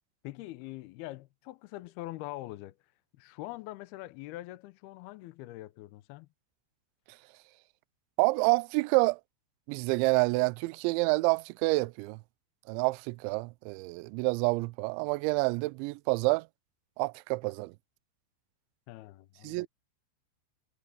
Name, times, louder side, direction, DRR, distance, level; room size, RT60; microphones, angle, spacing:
voice 1, 0.2-2.8 3.2-6.3 18.9-19.7, left 17 dB, 80° left, 2.3 m, -43 dB
voice 2, 8.2-9.2 9.7-12.2 12.7-16.5 17.0-17.7 19.4-19.7, right 25 dB, 85° right, 2.8 m, -28 dB
omnidirectional pair, 5.4 m